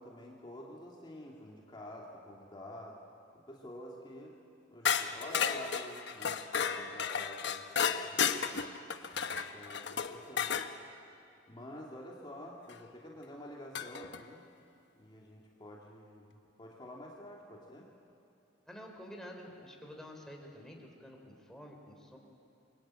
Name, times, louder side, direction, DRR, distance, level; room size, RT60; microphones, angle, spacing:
voice 1, 0.0-3.0 3.5-4.4 4.7-8.8 9.3-10.6 11.5-14.5 15.0-17.9, left 1 dB, 25° left, -3 dB, 2.5 m, -49 dB
sound 1, 4.8-10.7 12.7-12.8 13.7-14.2, left 7 dB, 65° left, 1.2 m, -33 dB
voice 2, 18.7-22.2, equal, 5° left, 0 dB, 3.7 m, -49 dB
28.5 x 23.5 x 8.9 m, 2.6 s
head